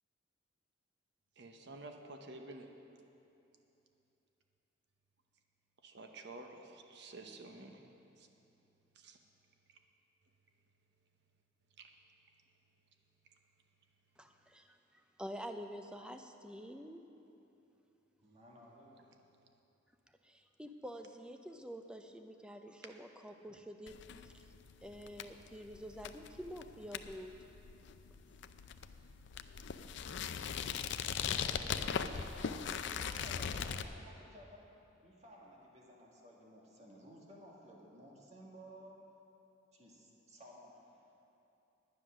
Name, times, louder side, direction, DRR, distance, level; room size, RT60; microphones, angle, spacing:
voice 1, 1.4-2.7 5.8-7.8 8.2-8.3 9.0-9.2 11.8-11.9, right 2 dB, 60° right, 4 dB, 0.9 m, -50 dB
voice 2, 14.2-17.1 20.2-24.4 24.8-27.4, equal, 5° right, 6 dB, 0.5 m, -48 dB
voice 3, 18.2-19.0 31.2-34.7 35.0-39.0 39.7-41.0, equal, 35° right, -2 dB, 1.8 m, -56 dB
sound 1, 23.9-33.9, left 7 dB, 65° left, 0.4 m, -40 dB
10.0 x 9.6 x 6.2 m, 2.9 s
head